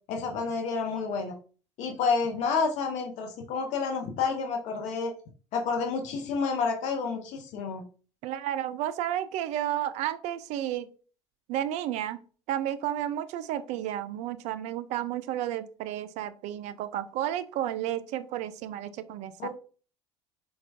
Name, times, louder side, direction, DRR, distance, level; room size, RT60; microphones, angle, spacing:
voice 1, 0.1-1.3 1.8-5.1 5.5-7.8 19.4-19.5, left 5 dB, 55° left, 4 dB, 0.6 m, -29 dB
voice 2, 8.2-10.9 11.5-12.2 12.5-19.5, right 12 dB, 50° right, 13 dB, 0.4 m, -32 dB
4.3 x 2.3 x 2.6 m, 0.39 s
figure-of-eight pair, 65°, 15 cm